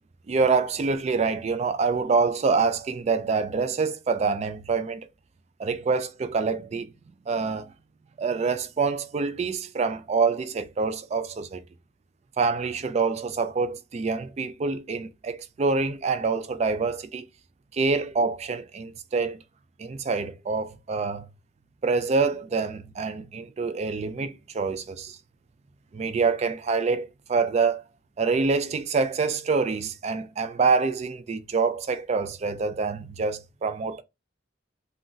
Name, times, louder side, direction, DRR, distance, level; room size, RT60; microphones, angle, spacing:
voice 1, 0.3-5.1 5.6-6.9 7.3-7.7 8.2-11.6 12.4-17.3 17.7-19.4 19.8-21.3 21.8-25.2 25.9-27.8 28.2-34.0, right 4 dB, 35° right, 0.3 m, -26 dB
2.5 x 2.1 x 3.7 m
head